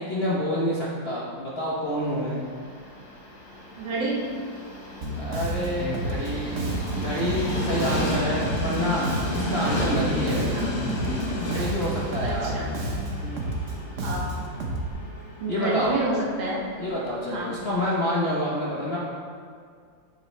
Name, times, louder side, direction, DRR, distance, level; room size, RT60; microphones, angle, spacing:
voice 1, 0.0-2.4 5.1-9.1 9.3-10.7 11.4-12.6 15.5-16.0 16.8-19.0, equal, 50° left, -5 dB, 0.7 m, -28 dB
Train, 1.9-18.0, left 1 dB, 80° left, 2.3 m, -33 dB
voice 2, 3.8-4.2 10.5-10.7 12.2-12.7 14.0-14.3 15.4-16.6 17.3-17.5, right 2 dB, 75° right, -5 dB, 2.1 m, -29 dB
Bass guitar, 5.0-14.9, right 2 dB, 55° right, 1.0 m, -30 dB
8.2 x 6.7 x 3.1 m, 2.1 s
omnidirectional pair, 2.1 m